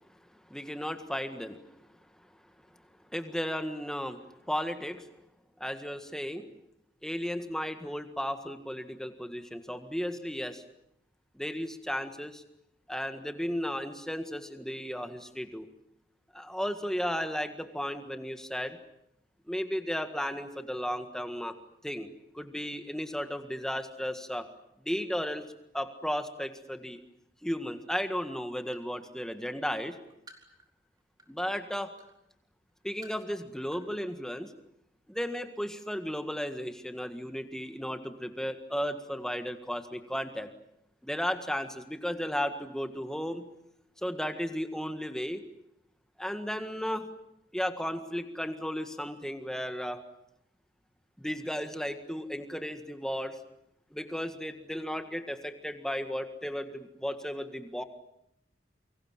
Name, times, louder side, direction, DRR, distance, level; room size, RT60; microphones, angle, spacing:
voice 1, 0.5-1.6 3.1-4.2 4.5-5.1 5.6-6.5 7.0-10.6 11.4-12.4 12.9-15.7 16.3-18.8 19.5-21.5 21.8-22.1 22.3-24.5 24.8-25.4 25.7-27.0 27.4-30.0 31.3-31.9 32.8-34.5 35.1-40.5 41.0-43.5 44.0-45.4 46.2-47.1 47.5-50.0 51.2-53.4 53.9-57.8, equal, 5° left, 8 dB, 1.7 m, -34 dB
sound 1, 27.6-27.8 28.2-28.9 29.4-31.5 32.0-32.1 32.7-33.3 33.7-33.9 34.1-34.2, right 1 dB, 20° right, 3.4 m, -55 dB
29.0 x 24.5 x 7.4 m, 0.78 s
head